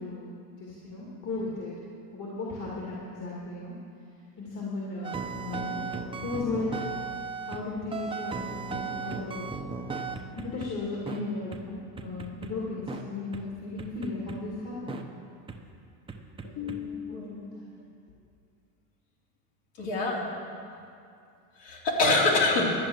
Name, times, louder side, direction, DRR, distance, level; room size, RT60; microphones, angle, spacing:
voice 1, 0.0-1.7 2.1-3.7 4.4-5.8 6.2-6.7 7.4-9.5 10.3-15.0 16.6-17.7, left 3 dB, 40° left, -5 dB, 2.5 m, -36 dB
sound 1, 5.0-7.6 7.9-10.7 11.1-11.2 11.5-11.6 12.0-12.5 12.9-13.0 13.3-13.4 13.8-14.4 14.9-15.0 15.5-15.6 16.1-16.8, right 4 dB, 10° right, 0.8 m, -36 dB
voice 2, 16.4-17.3 19.8-20.3 21.6-22.7, left 2 dB, 65° left, -3 dB, 3.2 m, -26 dB
12.5 x 8.4 x 6.3 m, 2.4 s
supercardioid pair, 105°, 44 cm